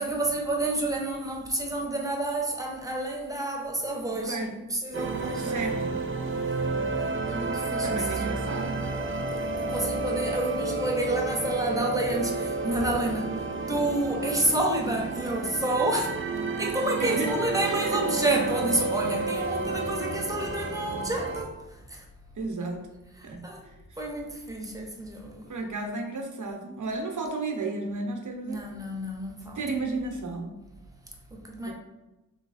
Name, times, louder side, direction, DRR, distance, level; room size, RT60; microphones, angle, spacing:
voice 1, 0.0-5.6 6.9-8.4 9.6-16.3 16.6-22.1 23.1-23.7 24.0-25.6 28.4-29.6 31.3-31.7, right 1 dB, 10° right, -1 dB, 0.9 m, -30 dB
voice 2, 4.1-4.5 5.3-5.9 7.8-8.8 17.0-17.3 17.6-18.4 22.3-22.8 23.2-23.4 25.5-28.6 29.6-30.5 31.7-31.8, right 3 dB, 60° right, 2 dB, 0.8 m, -33 dB
sound 1, 4.9-21.4, right 3 dB, 35° right, 0.5 m, -31 dB
3.2 x 3.1 x 4.0 m, 1.0 s
wide cardioid pair, 70°, 34 cm